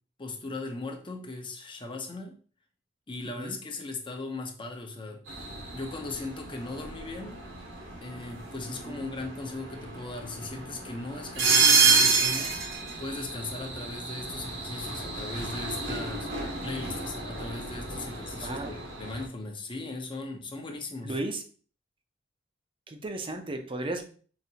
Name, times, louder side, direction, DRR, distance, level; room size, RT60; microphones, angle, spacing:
voice 1, 0.2-2.4 3.1-5.2 5.7-7.4 8.0-12.6 13.0-16.3 16.6-21.1, left 2 dB, 25° left, 3 dB, 0.7 m, -38 dB
sound 1, 5.3-19.3, right 4 dB, 80° right, 1.0 m, -29 dB
voice 2, 8.7-9.1 18.4-18.7 21.0-21.4 22.9-24.0, right 2 dB, 30° right, 5 dB, 0.5 m, -34 dB
5.0 x 2.6 x 2.7 m, 0.41 s
head